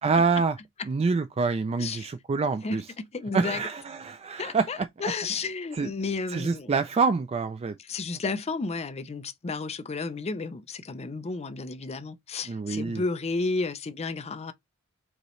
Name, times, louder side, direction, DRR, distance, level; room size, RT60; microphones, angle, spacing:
voice 1, 0.0-0.6 0.8-2.9 3.3-4.9 5.7-5.9 6.3-7.7 12.5-13.0, right 4 dB, 30° right, 0.3 m, -26 dB
voice 2, 2.6-3.6 4.4-6.7 7.9-14.5, left 3 dB, 30° left, 0.5 m, -32 dB
5.3 x 2.9 x 3.1 m
head